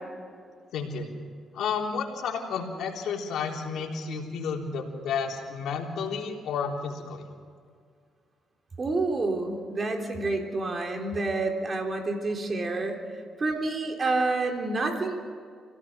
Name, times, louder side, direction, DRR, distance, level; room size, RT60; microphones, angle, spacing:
voice 1, 0.7-1.1 1.5-7.3, left 5 dB, 80° left, 0 dB, 3.7 m, -31 dB
voice 2, 8.8-13.0 13.4-15.1, right 2 dB, 35° right, 2 dB, 3.7 m, -28 dB
26.0 x 17.0 x 6.2 m, 2.1 s
cardioid pair, 95°, 0 cm